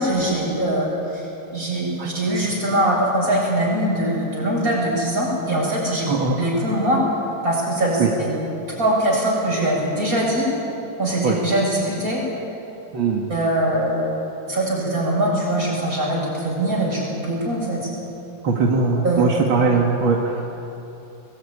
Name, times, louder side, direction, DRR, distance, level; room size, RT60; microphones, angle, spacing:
voice 1, 0.0-6.1 6.4-7.1 7.4-8.4 8.8-10.5 11.0-12.2 13.3-14.1 14.4-17.9 19.0-19.2, right 1 dB, 45° right, -3 dB, 8.0 m, -22 dB
voice 2, 12.9-13.2 18.4-20.4, right 4 dB, 85° right, -1 dB, 2.6 m, -20 dB
23.0 x 19.5 x 9.8 m, 2.9 s
omnidirectional pair, 2.1 m